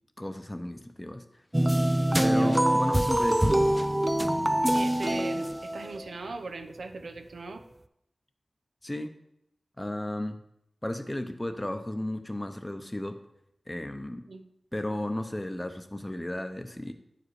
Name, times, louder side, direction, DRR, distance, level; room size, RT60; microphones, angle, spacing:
voice 1, 0.2-1.2 2.2-3.7 8.8-9.1 9.8-10.4 10.8-13.2 13.7-14.2 14.7-16.9, left 1 dB, 15° left, 7 dB, 0.8 m, -34 dB
sound 1, 1.5-6.1, right 1 dB, 15° right, 0.4 m, -24 dB
voice 2, 2.2-2.7 4.7-7.6 14.3-14.4, right 3 dB, 85° right, 6 dB, 0.7 m, -39 dB
8.8 x 5.0 x 4.8 m, 0.78 s
wide cardioid pair, 55°, 0 cm